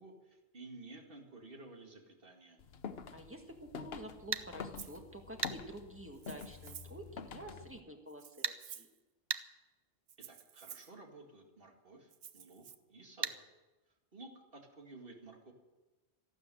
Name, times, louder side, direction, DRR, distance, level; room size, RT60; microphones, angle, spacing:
voice 1, 0.0-2.6 10.3-12.6 12.9-13.4 14.1-15.5, right 2 dB, 55° right, 2 dB, 2.5 m, -53 dB
sound 1, 2.6-7.8, left 6 dB, 65° left, 1.0 m, -47 dB
voice 2, 3.1-8.9, right 1 dB, 10° right, 3 dB, 1.7 m, -49 dB
sound 2, 4.3-4.5 5.4-5.6 8.4-8.6 9.3-9.5 13.2-13.4, right 5 dB, 35° right, 0.4 m, -35 dB
Rattle (instrument), 4.8-5.0 6.1-7.0 8.1-9.0 10.1-10.9 12.1-12.8, right 9 dB, 75° right, 1.0 m, -52 dB
13.5 x 12.0 x 7.7 m, 1.1 s
omnidirectional pair, 1.1 m